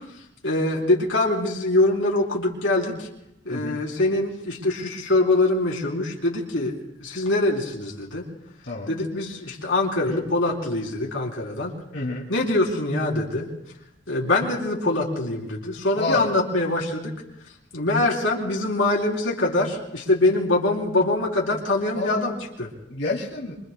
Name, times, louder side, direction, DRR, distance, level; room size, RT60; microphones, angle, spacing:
voice 1, 0.4-3.1 3.4-8.2 8.9-11.7 12.3-13.5 14.1-17.1 17.7-22.7, left 2 dB, 85° left, -2 dB, 3.4 m, -24 dB
voice 2, 3.5-3.8 8.6-8.9 10.1-10.2 11.9-12.3 15.9-16.3 21.9-22.4 22.9-23.6, left 3 dB, 65° left, -4 dB, 2.6 m, -28 dB
25.5 x 25.0 x 2.2 m, 0.82 s
head